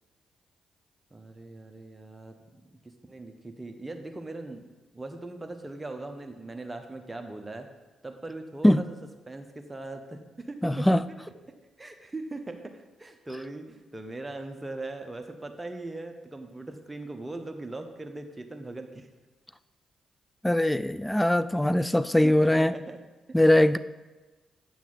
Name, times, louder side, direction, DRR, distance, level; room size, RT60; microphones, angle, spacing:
voice 1, 1.1-2.8 3.1-4.7 4.9-7.7 8.0-9.0 9.3-10.9 11.8-19.1 20.5-20.6 22.2-23.0, right 2 dB, 20° right, 5 dB, 1.0 m, -40 dB
voice 2, 10.6-11.0 20.4-22.7 23.3-23.8, left 1 dB, 10° left, 15 dB, 0.4 m, -21 dB
8.5 x 6.0 x 4.0 m, 1.2 s
hypercardioid pair, 45°, 0 cm